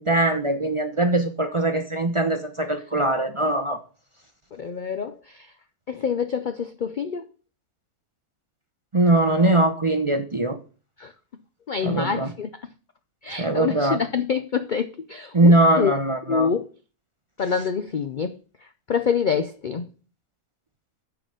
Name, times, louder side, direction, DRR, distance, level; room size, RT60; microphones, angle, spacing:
voice 1, 0.0-3.8 8.9-10.6 11.8-12.3 13.4-14.0 15.3-16.5, right 1 dB, 30° right, 0.6 m, -21 dB
voice 2, 4.5-5.5 5.9-7.2 11.0-11.1 11.7-12.5 13.2-15.9 16.3-16.6 17.4-18.4 18.9-19.9, left 6 dB, 70° left, 0.4 m, -26 dB
9.0 x 4.8 x 6.5 m
omnidirectional pair, 1.6 m